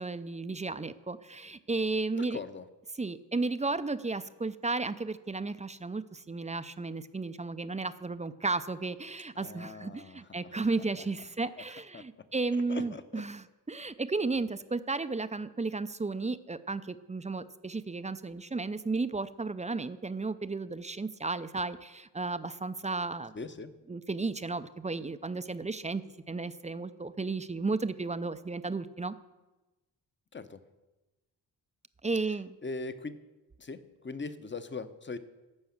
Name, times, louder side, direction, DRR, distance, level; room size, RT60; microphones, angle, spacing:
voice 1, 0.0-2.4 3.0-23.3 23.9-29.1 32.0-32.6, right 3 dB, 15° right, 13 dB, 0.5 m, -34 dB
voice 2, 2.1-2.7 9.4-10.7 11.0-11.1 11.9-12.0 12.7-13.2 23.3-23.7 30.3-30.6 32.6-33.2 33.6-35.2, left 4 dB, 25° left, 11 dB, 0.8 m, -40 dB
11.5 x 4.8 x 7.2 m, 1.1 s
cardioid pair, 50°, 43 cm